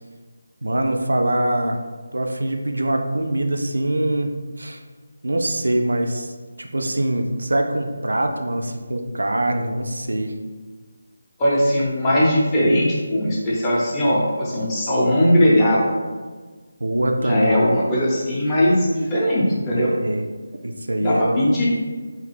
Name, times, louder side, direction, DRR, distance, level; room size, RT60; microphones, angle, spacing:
voice 1, 0.6-1.8 2.1-4.8 5.2-6.3 6.6-10.3 16.8-17.6 19.8-20.3 20.6-21.3, right 1 dB, 65° right, 4 dB, 0.3 m, -23 dB
voice 2, 11.4-15.9 17.2-19.9 21.0-21.7, equal, 15° left, -7 dB, 0.7 m, -19 dB
3.1 x 2.3 x 3.0 m, 1.4 s
figure-of-eight pair, 155°, 0 cm